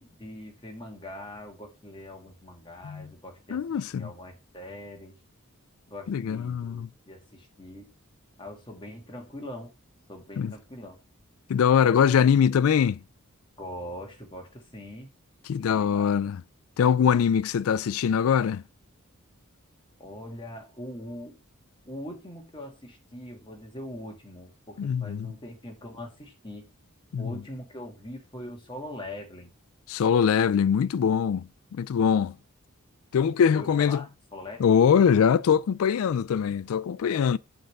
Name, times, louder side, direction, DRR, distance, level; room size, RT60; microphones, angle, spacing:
voice 1, 0.0-5.2 5.9-7.9 8.4-9.7 10.1-11.0 13.6-15.1 15.7-16.1 20.0-21.4 21.8-26.6 27.2-29.5 33.5-34.8, left 1 dB, 25° left, 1.7 m, -42 dB
voice 2, 3.5-4.1 6.1-6.9 10.4-10.5 11.5-13.0 15.5-16.4 16.8-18.6 24.8-25.3 27.1-27.3 29.9-31.4 31.7-32.3 33.1-34.0 34.6-37.4, left 7 dB, 75° left, 0.3 m, -22 dB
7.8 x 3.6 x 6.5 m
head